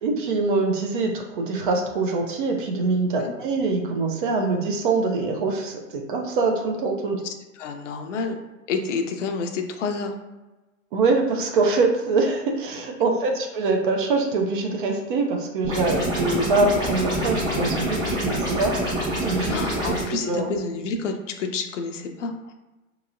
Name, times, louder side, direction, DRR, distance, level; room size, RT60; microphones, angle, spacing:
voice 1, 0.0-7.2 10.9-18.8 19.2-19.6 19.9-20.5, right 3 dB, 40° right, 3 dB, 0.5 m, -24 dB
voice 2, 7.2-8.4 8.7-10.2 16.0-16.1 19.5-22.5, left 4 dB, 60° left, 5 dB, 0.6 m, -29 dB
sound 1, 15.6-20.0, right 1 dB, 10° right, 1.1 m, -26 dB
2.9 x 2.8 x 2.5 m, 1.1 s
hypercardioid pair, 125°, 40 cm